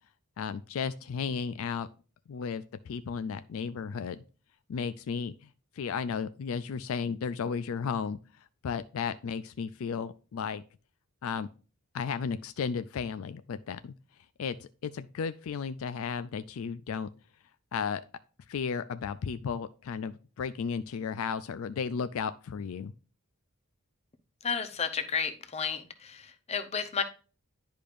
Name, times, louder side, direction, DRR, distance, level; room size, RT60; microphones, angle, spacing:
voice 1, 0.4-1.9 2.3-4.2 4.7-5.5 5.7-10.6 11.2-11.5 11.9-13.9 14.4-17.1 17.7-18.0 18.5-22.9, left 6 dB, 65° left, 12 dB, 0.3 m, -34 dB
voice 2, 24.4-27.0, left 6 dB, 30° left, 10 dB, 0.6 m, -32 dB
10.5 x 5.0 x 2.5 m, 0.35 s
head